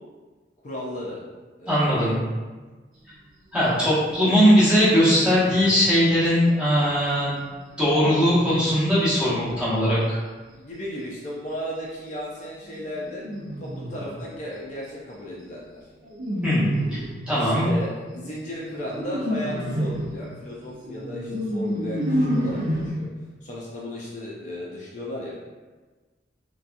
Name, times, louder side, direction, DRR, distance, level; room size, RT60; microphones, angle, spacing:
voice 1, 0.6-1.2 1.6-2.2 4.2-4.4 10.5-13.2 13.6-15.9 17.3-23.1 23.4-25.4, left 1 dB, 45° left, -5 dB, 0.4 m, -35 dB
voice 2, 1.7-2.2 3.5-7.3 7.8-10.2 16.4-16.6 16.9-17.0 17.3-17.7, equal, 5° right, -11 dB, 0.9 m, -20 dB
sound 1, 3.6-4.2 4.7-5.7 7.1-9.6 12.8-14.4 16.0-17.3 18.0-22.9, equal, 50° right, 0.6 m, -30 dB
2.7 x 2.2 x 2.4 m, 1.3 s
head